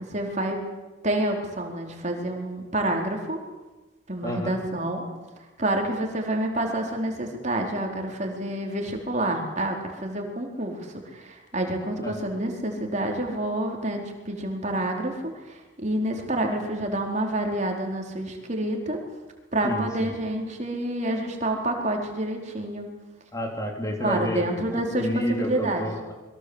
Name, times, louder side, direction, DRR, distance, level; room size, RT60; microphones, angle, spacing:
voice 1, 0.1-0.6 1.0-3.4 4.1-5.1 5.6-19.0 19.5-22.9 24.0-25.9, right 1 dB, 35° right, 2 dB, 4.5 m, -28 dB
voice 2, 4.2-4.6 12.0-12.2 19.6-19.9 23.3-26.1, equal, 15° left, 2 dB, 3.4 m, -30 dB
28.5 x 23.0 x 8.2 m, 1.1 s
head